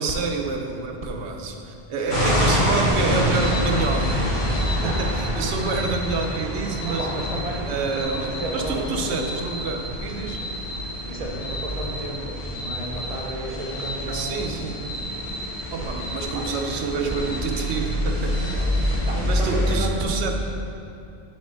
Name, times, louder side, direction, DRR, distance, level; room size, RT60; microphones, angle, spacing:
voice 1, 0.0-7.1 7.7-8.3 8.5-10.4 14.0-14.8 15.7-18.6 19.2-20.4, right 4 dB, 80° right, 3 dB, 0.9 m, -28 dB
voice 2, 1.9-2.3 3.3-3.4 4.7-5.5 6.8-9.5 11.1-15.0 16.3-16.6 18.4-20.0, right 1 dB, 35° right, -1 dB, 0.8 m, -33 dB
sound 1, 2.1-19.8, left 1 dB, 70° left, 1.7 m, -27 dB
sound 2, 3.1-19.0, equal, 20° left, 1.5 m, -36 dB
8.5 x 3.6 x 4.5 m, 2.7 s
omnidirectional pair, 1.1 m